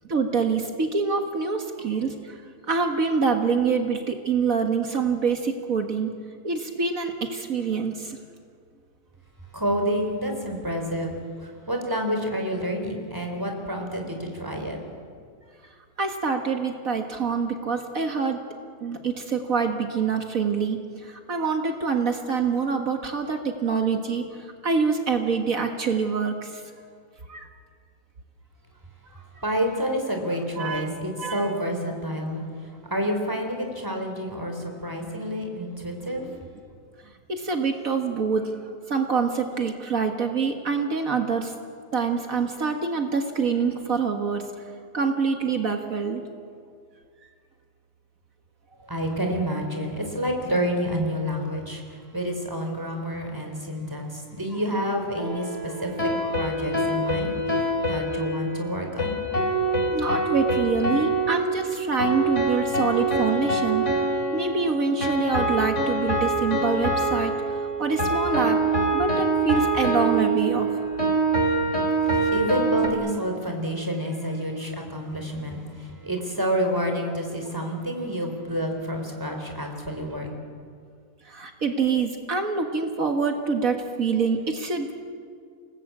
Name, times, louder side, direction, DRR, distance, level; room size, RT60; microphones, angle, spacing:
voice 1, 0.1-6.1 6.4-8.2 16.0-18.4 18.8-26.6 27.3-27.5 30.6-30.9 31.2-31.5 37.3-41.5 41.9-44.7 44.9-46.2 59.9-63.8 64.3-68.6 68.9-70.8 72.2-72.3 81.2-85.1, right 5 dB, 60° right, 4 dB, 2.0 m, -26 dB
voice 2, 9.5-11.1 11.7-14.8 29.4-32.4 32.9-34.5 34.8-36.2 48.8-51.8 52.1-54.0 54.3-59.2 72.3-75.6 76.0-80.3, equal, 15° right, 3 dB, 4.0 m, -28 dB
sound 1, 55.2-72.9, right 2 dB, 50° left, 3.7 m, -25 dB
29.0 x 19.0 x 8.5 m, 2.2 s
omnidirectional pair, 1.6 m